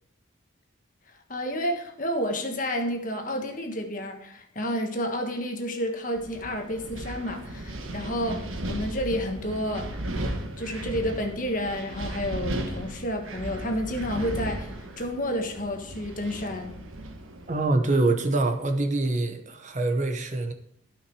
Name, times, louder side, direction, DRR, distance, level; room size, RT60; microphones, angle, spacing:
voice 1, 1.3-10.2 10.6-16.7, equal, 40° left, 4 dB, 1.4 m, -30 dB
Wind, 6.1-17.7, right 1 dB, 85° right, 1.4 m, -36 dB
voice 2, 17.5-20.5, right 2 dB, 35° right, 5 dB, 0.9 m, -25 dB
12.5 x 5.9 x 4.7 m, 0.72 s
head